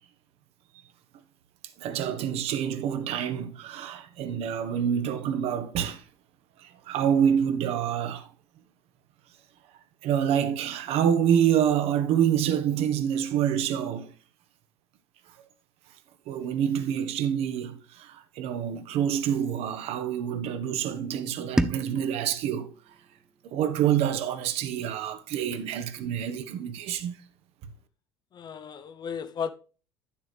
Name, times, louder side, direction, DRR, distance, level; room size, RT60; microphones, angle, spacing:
voice 1, 1.8-6.0 6.9-8.3 10.0-14.1 16.3-22.7 23.4-27.2, right 9 dB, 50° right, 1.2 m, -27 dB
sound 1, 21.6-24.5, right 1 dB, 5° right, 0.6 m, -33 dB
voice 2, 28.3-29.5, left 6 dB, 35° left, 0.8 m, -34 dB
10.5 x 7.1 x 3.4 m
figure-of-eight pair, 65°, 13 cm